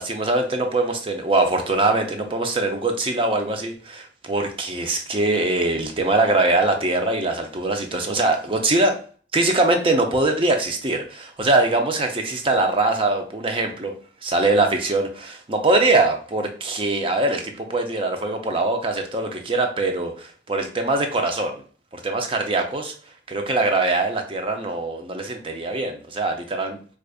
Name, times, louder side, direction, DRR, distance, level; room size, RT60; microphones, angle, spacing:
voice 1, 0.0-9.0 9.3-13.9 14.2-21.5 21.9-22.9 23.3-26.8, right 2 dB, 30° right, 4 dB, 0.6 m, -22 dB
4.9 x 2.4 x 2.4 m, 0.43 s
head